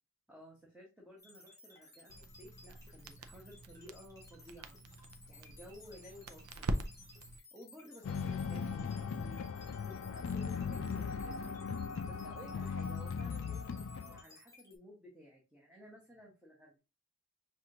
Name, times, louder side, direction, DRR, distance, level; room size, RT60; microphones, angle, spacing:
voice 1, 0.3-4.8 5.3-6.8 7.5-11.5 12.0-16.8, equal, 5° right, -4 dB, 1.1 m, -55 dB
sound 1, 1.2-14.8, left 2 dB, 15° left, 1.3 m, -59 dB
Crackle, 2.1-7.4, right 1 dB, 90° right, 0.5 m, -43 dB
sound 2, 8.0-14.2, left 5 dB, 65° left, 0.4 m, -38 dB
5.8 x 2.5 x 2.8 m, 0.28 s
head